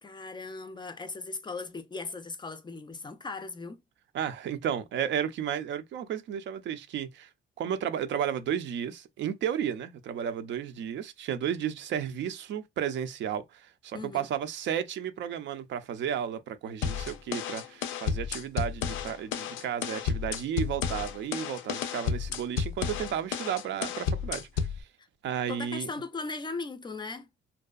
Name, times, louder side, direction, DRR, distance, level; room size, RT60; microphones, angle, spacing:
voice 1, 0.0-3.8 13.9-14.3 25.5-27.3, left 3 dB, 25° left, 0.4 m, -38 dB
voice 2, 4.1-7.3 7.6-24.9 25.2-25.9, right 9 dB, 70° right, 0.4 m, -33 dB
sound 1, 16.8-24.8, left 7 dB, 90° left, 0.4 m, -32 dB
2.6 x 2.3 x 2.3 m
cardioid pair, 90°, 20 cm